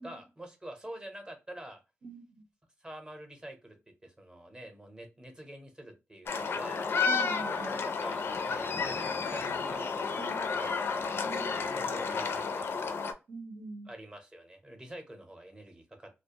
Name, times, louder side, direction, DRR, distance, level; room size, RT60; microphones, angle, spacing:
voice 1, 0.0-1.8 2.8-3.8 4.0-6.8 7.4-10.1 10.6-10.8 11.7-12.9 13.9-16.1, right 1 dB, 20° right, 5 dB, 0.7 m, -46 dB
voice 2, 2.0-2.5 7.0-7.7 10.2-10.5 11.2-11.7 13.3-13.9, right 3 dB, 70° right, 4 dB, 0.7 m, -44 dB
sound 1, 6.3-13.1, left 5 dB, 60° left, 0.4 m, -32 dB
2.4 x 2.1 x 2.8 m, 0.26 s
wide cardioid pair, 125°, 5 cm